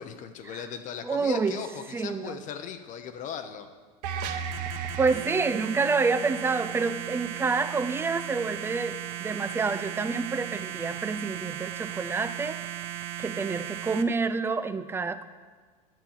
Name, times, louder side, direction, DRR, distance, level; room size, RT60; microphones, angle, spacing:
voice 1, 0.0-3.7 5.1-5.4, left 7 dB, 35° left, 7 dB, 0.8 m, -38 dB
voice 2, 1.0-1.6 1.9-2.4 5.0-12.6 13.2-15.3, right 4 dB, 10° right, 13 dB, 0.4 m, -28 dB
sound 1, 4.0-14.0, right 10 dB, 65° right, 0.9 m, -36 dB
10.5 x 6.0 x 7.2 m, 1.5 s
supercardioid pair, 125°, 21 cm